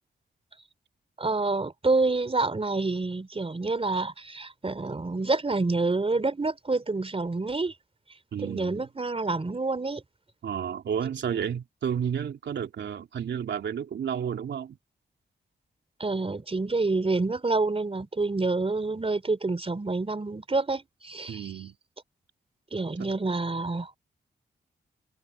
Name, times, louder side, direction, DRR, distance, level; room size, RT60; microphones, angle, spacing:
voice 1, 1.2-7.7 8.4-10.0 16.0-21.5 22.7-24.0, right 3 dB, 30° right, 3.8 m, -28 dB
voice 2, 8.3-8.8 10.4-14.8 21.3-21.8 23.0-23.1, right 8 dB, 85° right, 3.0 m, -31 dB
cardioid pair, 60°, 18 cm